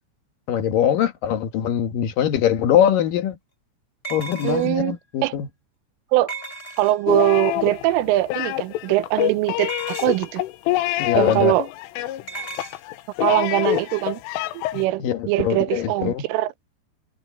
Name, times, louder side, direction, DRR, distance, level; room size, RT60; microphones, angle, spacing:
voice 1, 0.5-3.4 4.1-5.5 11.0-11.6 15.0-16.3, left 9 dB, 60° left, 2.4 m, -22 dB
sound 1, 2.5-2.6 4.0-4.9 6.3-7.2 9.6-10.3 12.3-12.8, right 2 dB, 10° left, 5.4 m, -35 dB
voice 2, 4.4-5.0 5.2-5.3 6.1-6.3 6.8-10.4 11.1-11.7 13.2-14.2 14.5-16.5, right 17 dB, 85° right, 3.3 m, -22 dB
sound 2, 7.1-14.9, left 15 dB, 80° left, 3.6 m, -26 dB
omnidirectional pair, 5.7 m